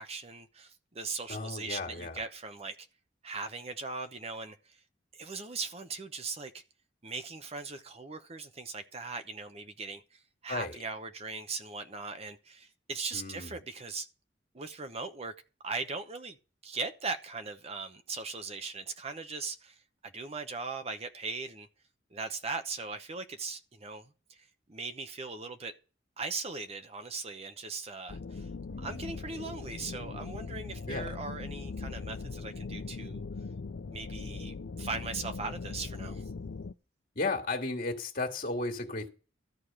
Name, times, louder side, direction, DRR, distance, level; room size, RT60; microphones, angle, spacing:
voice 1, 0.0-2.8 3.2-4.8 5.1-6.6 7.0-14.1 14.5-15.3 15.6-16.4 16.6-19.8 20.0-21.7 22.1-25.7 26.2-28.5 28.8-33.2 33.9-36.2, right 4 dB, 35° right, 0.9 m, -39 dB
voice 2, 1.3-2.3 10.5-10.8 13.1-13.5 28.7-29.1 30.9-31.2 37.2-39.1, left 3 dB, 50° left, 2.0 m, -35 dB
sound 1, 28.1-36.7, left 4 dB, 85° left, 0.5 m, -40 dB
13.5 x 4.9 x 8.8 m
head